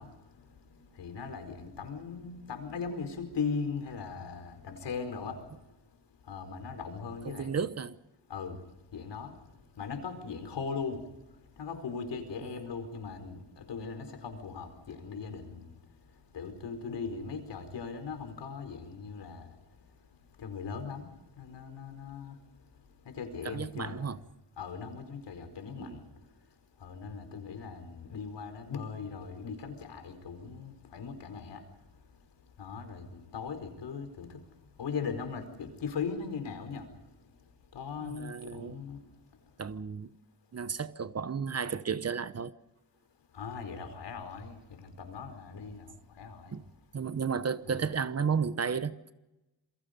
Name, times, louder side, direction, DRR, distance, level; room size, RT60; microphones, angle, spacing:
voice 1, 0.0-7.5 8.3-24.2 24.6-39.6 43.3-46.6 47.7-47.9, left 5 dB, 75° left, 4.8 m, -40 dB
voice 2, 7.3-8.0 12.4-12.6 23.4-24.2 25.8-26.0 38.0-38.8 39.6-40.1 40.5-42.5 46.5-46.6 46.9-49.1, right 6 dB, 35° right, 1.0 m, -33 dB
28.0 x 23.0 x 5.3 m
wide cardioid pair, 135°, 42 cm